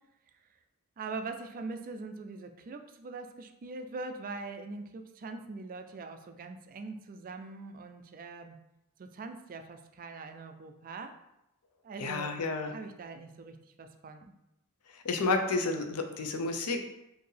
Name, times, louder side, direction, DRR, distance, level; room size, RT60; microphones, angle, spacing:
voice 1, 1.0-8.6 9.0-11.2 11.8-12.3 12.7-14.3, right 3 dB, 40° right, 7 dB, 0.3 m, -42 dB
voice 2, 12.0-12.7 14.9-16.8, left 3 dB, 85° left, 5 dB, 0.5 m, -31 dB
4.4 x 2.7 x 3.2 m, 0.87 s
head